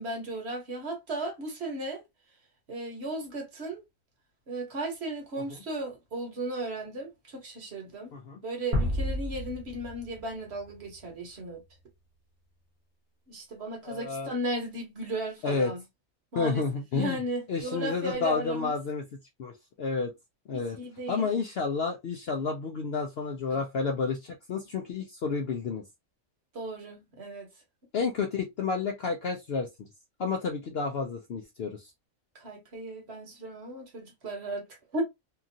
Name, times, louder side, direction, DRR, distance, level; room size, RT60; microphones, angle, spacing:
voice 1, 0.0-2.0 2.7-3.8 4.5-8.1 8.4-11.6 13.3-15.8 16.3-16.6 16.9-18.8 20.5-21.3 26.5-27.5 32.3-34.7 34.9-35.0, right 1 dB, 55° right, 1.2 m, -35 dB
sound 1, 8.7-11.7, equal, 30° right, 0.9 m, -32 dB
voice 2, 13.8-14.3 15.4-15.7 16.3-17.2 17.5-19.0 19.4-19.5 19.8-20.1 20.5-20.8 21.1-25.8 27.9-29.9 30.2-31.9, left 4 dB, 60° left, 0.7 m, -30 dB
2.9 x 2.4 x 2.6 m
omnidirectional pair, 1.4 m